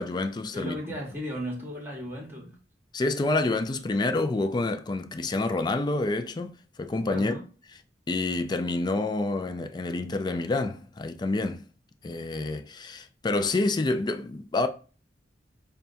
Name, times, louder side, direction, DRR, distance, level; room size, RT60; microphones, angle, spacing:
voice 1, 0.0-1.0 2.9-7.4 8.1-11.6 12.0-14.7, left 2 dB, 25° left, 0.3 m, -28 dB
voice 2, 0.5-2.6 7.1-7.4, equal, 15° right, 1.0 m, -36 dB
5.6 x 2.2 x 2.5 m
head